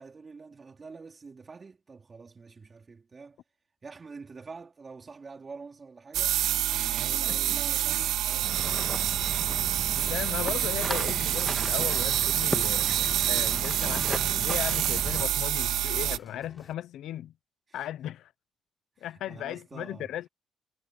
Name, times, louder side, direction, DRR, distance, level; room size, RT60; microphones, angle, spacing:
voice 1, 0.0-3.4 3.8-6.4 6.9-9.9 10.5-10.8 16.2-16.3 17.7-17.9 19.0-20.1, right 4 dB, 35° right, 4.3 m, -47 dB
sound 1, 6.1-16.2, right 13 dB, 85° right, 0.5 m, -27 dB
sound 2, 8.4-15.3, equal, 5° right, 2.0 m, -36 dB
voice 2, 9.9-12.9 13.3-17.3 17.7-18.3 19.0-20.3, left 12 dB, 80° left, 0.9 m, -36 dB
sound 3, 11.6-16.7, left 2 dB, 20° left, 7.6 m, -51 dB
cardioid pair, 90°, 0 cm